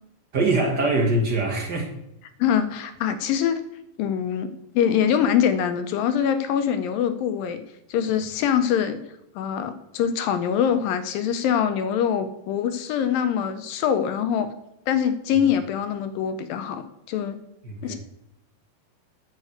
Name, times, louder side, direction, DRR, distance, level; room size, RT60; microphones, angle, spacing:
voice 1, 0.3-1.9 17.6-17.9, right 2 dB, 50° right, 0 dB, 1.1 m, -23 dB
voice 2, 2.4-3.6 4.0-4.5 4.8-7.6 7.9-9.0 9.4-14.5 14.9-17.4 17.8-18.0, left 8 dB, 80° left, 10 dB, 2.4 m, -24 dB
9.6 x 5.4 x 7.9 m, 0.84 s
omnidirectional pair, 4.1 m